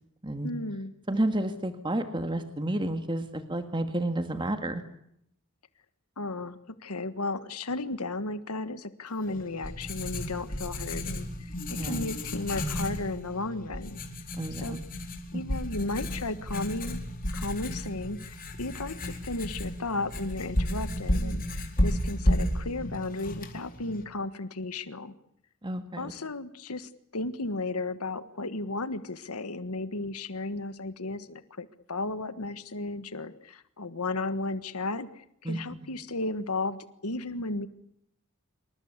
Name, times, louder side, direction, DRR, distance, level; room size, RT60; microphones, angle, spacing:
voice 1, 0.4-0.9 6.2-14.0 14.5-14.8 15.3-17.0 17.3-25.1 26.0-37.7, left 2 dB, 90° left, 12 dB, 1.5 m, -34 dB
voice 2, 1.1-4.8 11.7-12.0 14.3-14.8 15.3-15.4 25.6-26.1 35.5-35.6, right 1 dB, 20° right, 8 dB, 1.8 m, -30 dB
Writing, 9.2-24.0, left 1 dB, 40° left, 4.3 m, -32 dB
27.5 x 24.5 x 8.2 m, 0.76 s
head